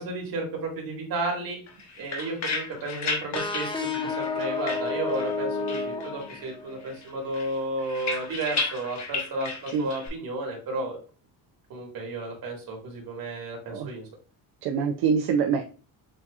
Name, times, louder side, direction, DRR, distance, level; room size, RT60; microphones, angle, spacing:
voice 1, 0.0-1.6 2.0-11.0 11.7-14.0, right 2 dB, 65° right, 0 dB, 2.0 m, -33 dB
sound 1, 1.7-5.4 5.7-6.5 6.8-10.1, left 4 dB, 45° left, 1.2 m, -34 dB
sound 2, 3.4-6.9, left 4 dB, 15° left, 0.4 m, -31 dB
voice 2, 14.6-15.7, right 6 dB, 85° right, 4 dB, 0.6 m, -25 dB
7.3 x 2.8 x 2.4 m, 0.38 s
cardioid pair, 160°, 37 cm